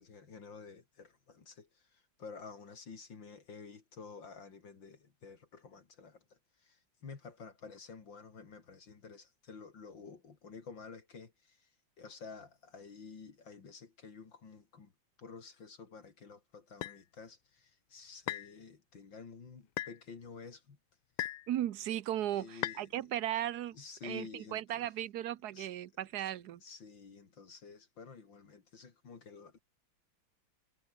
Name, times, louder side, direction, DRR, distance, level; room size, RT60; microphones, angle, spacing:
voice 1, 0.0-11.7 12.0-14.9 15.2-20.8 22.3-23.1 23.7-24.9 25.5-25.7 26.6-29.6, left 5 dB, 70° left, 3.4 m, -51 dB
sound 1, 16.8-17.0 18.3-18.5 19.8-20.0 21.2-21.5 22.6-22.8, left 14 dB, 90° left, 1.6 m, -37 dB
voice 2, 21.5-23.8 24.0-26.6, right 12 dB, 60° right, 1.2 m, -36 dB
omnidirectional pair, 2.2 m